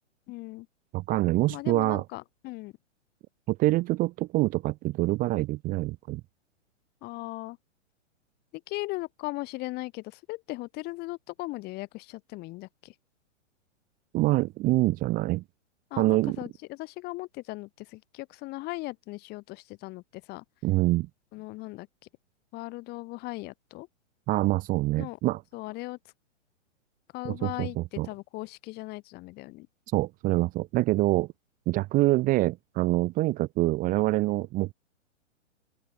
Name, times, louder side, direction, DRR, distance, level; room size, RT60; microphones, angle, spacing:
voice 1, 0.3-0.7 1.5-2.7 7.0-7.6 8.5-12.9 15.9-20.4 21.3-21.9 22.5-23.9 25.0-25.2 25.5-26.0 27.1-29.7, left 21 dB, 25° left, 1.3 m, -38 dB
voice 2, 0.9-2.0 3.5-6.2 14.1-15.4 16.0-16.4 20.6-21.1 24.3-25.4 27.2-28.1 29.9-31.3 31.7-34.7, right 19 dB, 20° right, 1.0 m, -25 dB
open air
figure-of-eight pair, 115°, 37 cm